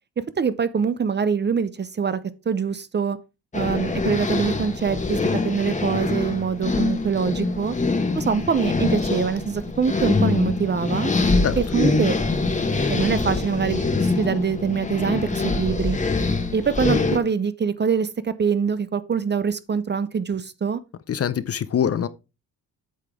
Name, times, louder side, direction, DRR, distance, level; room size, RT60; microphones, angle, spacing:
voice 1, 0.4-2.2 2.5-3.2 3.5-5.2 5.4-7.8 8.1-11.1 11.6-12.2 12.9-16.0 16.5-20.8, right 6 dB, 30° right, 0.5 m, -24 dB
sound 1, 3.5-17.2, left 3 dB, 20° left, 1.1 m, -24 dB
voice 2, 21.1-22.1, left 8 dB, 40° left, 0.5 m, -23 dB
8.4 x 5.8 x 3.5 m
cardioid pair, 110°, 38 cm